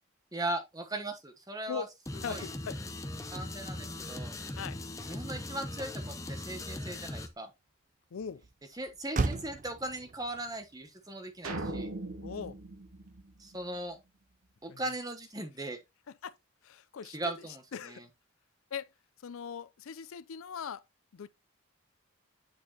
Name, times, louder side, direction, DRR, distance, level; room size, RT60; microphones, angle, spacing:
voice 1, 0.3-1.9 2.3-2.5 3.3-4.3 5.1-7.5 8.8-11.9 13.4-14.0 14.6-15.8 17.1-18.1, right 1 dB, 15° right, 1.0 m, -38 dB
sound 1, 2.1-7.3, left 1 dB, 15° left, 0.7 m, -40 dB
voice 2, 2.2-2.8 4.6-4.8 5.1-5.2 8.1-8.4 12.2-12.6 14.7-14.8 16.2-16.4 16.6-17.2 17.7-18.0 18.7-18.9 19.2-20.8 21.1-21.3, left 7 dB, 75° left, 0.4 m, -40 dB
Motor vehicle (road), 7.4-13.7, right 3 dB, 35° right, 0.4 m, -41 dB
sound 2, 11.4-13.9, right 2 dB, 80° right, 1.2 m, -39 dB
8.8 x 4.5 x 2.9 m
head